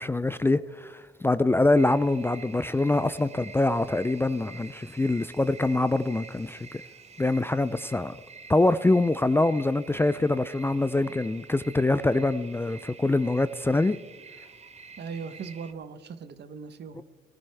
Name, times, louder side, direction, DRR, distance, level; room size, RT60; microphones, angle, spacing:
voice 1, 0.0-6.6 7.2-8.2 8.5-14.0 17.0-17.1, left 2 dB, 10° left, 14 dB, 0.4 m, -24 dB
sound 1, 1.8-15.7, right 5 dB, 35° right, 1.0 m, -48 dB
voice 2, 15.0-17.0, right 6 dB, 60° right, 12 dB, 1.0 m, -39 dB
19.5 x 13.5 x 3.4 m, 1.3 s
cardioid pair, 90°, 20 cm